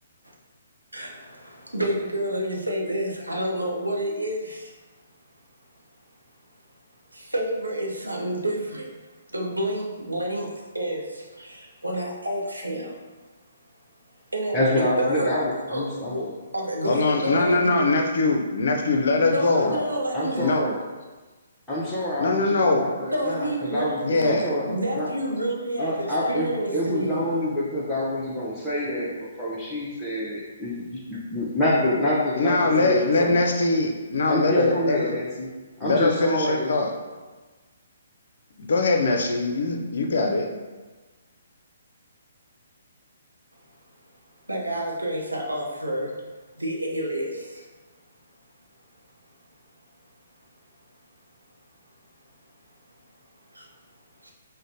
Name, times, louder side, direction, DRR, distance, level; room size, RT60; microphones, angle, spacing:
voice 1, 1.6-4.7 7.1-8.9 9.3-13.0 14.3-16.2 16.5-17.9 19.3-20.6 23.1-24.3 24.7-27.2 44.5-46.1 46.6-47.7 53.5-53.7 54.2-54.3, right 1 dB, 85° right, 0 dB, 0.6 m, -29 dB
voice 2, 14.5-16.2 19.6-19.8 20.1-20.8 21.7-24.7 24.9-25.1 25.8-33.4 34.3-35.5 35.8-36.7, left 1 dB, 10° left, -9 dB, 0.6 m, -27 dB
voice 3, 16.9-19.7 20.4-20.6 22.2-22.9 24.0-24.5 32.4-35.2 35.8-36.9 38.6-40.5, left 3 dB, 55° left, 3 dB, 0.5 m, -22 dB
4.9 x 2.1 x 2.6 m, 1.3 s
figure-of-eight pair, 130°, 0 cm